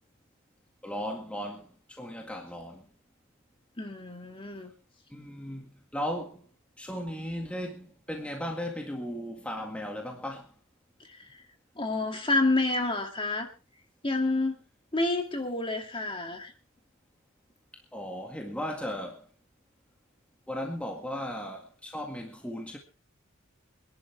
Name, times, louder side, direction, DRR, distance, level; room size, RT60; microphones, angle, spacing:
voice 1, 0.8-2.9 5.1-6.5 6.8-10.5 17.9-19.3 20.5-22.8, equal, 5° left, 1.9 m, -36 dB
voice 2, 3.8-4.7 11.8-13.5 14.0-14.6 14.9-16.5, left 2 dB, 25° left, 2.3 m, -28 dB
26.0 x 11.0 x 3.3 m
head